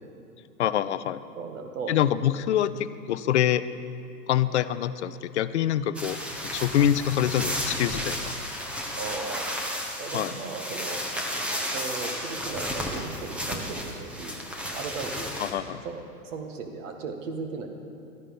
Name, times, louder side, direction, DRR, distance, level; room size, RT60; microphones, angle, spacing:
voice 1, 0.6-1.2 1.9-3.7 4.3-8.3 10.1-10.3 15.4-15.8, left 10 dB, 45° left, 14 dB, 0.5 m, -25 dB
voice 2, 1.4-2.0 8.9-9.5 10.0-11.0 11.7-14.4 14.7-15.3 15.9-17.7, right 4 dB, 50° right, 4 dB, 1.9 m, -36 dB
sound 1, 5.9-15.5, equal, 5° right, 0.5 m, -33 dB
13.0 x 10.0 x 5.5 m, 2.8 s
hypercardioid pair, 125°, 49 cm